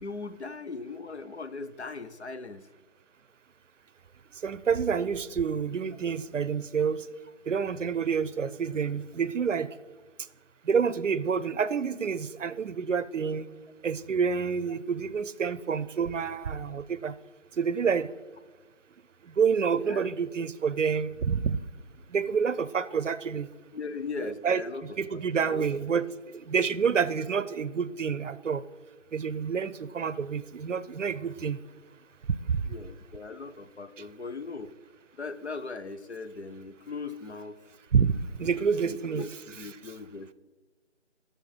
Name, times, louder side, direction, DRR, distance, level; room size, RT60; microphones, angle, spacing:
voice 1, 0.0-2.7 19.8-20.1 23.7-25.8 32.7-34.7 35.2-37.6 38.4-40.3, left 4 dB, 60° left, 11 dB, 0.5 m, -39 dB
voice 2, 4.4-7.0 7.5-9.7 10.7-13.5 13.8-17.1 17.6-18.1 19.4-21.6 22.1-23.5 24.4-24.6 25.0-26.1 26.3-28.6 29.1-31.6 32.5-32.6 37.9-39.2, right 6 dB, 75° right, 16 dB, 0.5 m, -28 dB
12.5 x 6.7 x 3.2 m, 1.3 s
figure-of-eight pair, 175°, 38 cm